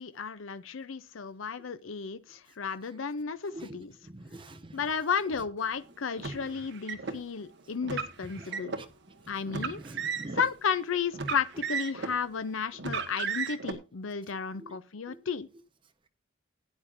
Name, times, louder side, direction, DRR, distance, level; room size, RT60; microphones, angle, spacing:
voice 1, 0.0-3.9 4.7-8.8 9.3-9.8 10.3-15.5, left 6 dB, 70° left, 0.6 m, -33 dB
voice 2, 3.5-4.8 8.4-8.9 9.5-10.4 14.6-14.8 15.1-15.2, right 1 dB, 25° right, 1.0 m, -45 dB
Car, 6.2-7.2 7.8-8.8 9.5-10.5 11.1-12.2 12.8-13.7, right 5 dB, 65° right, 1.4 m, -34 dB
17.5 x 8.9 x 2.6 m
head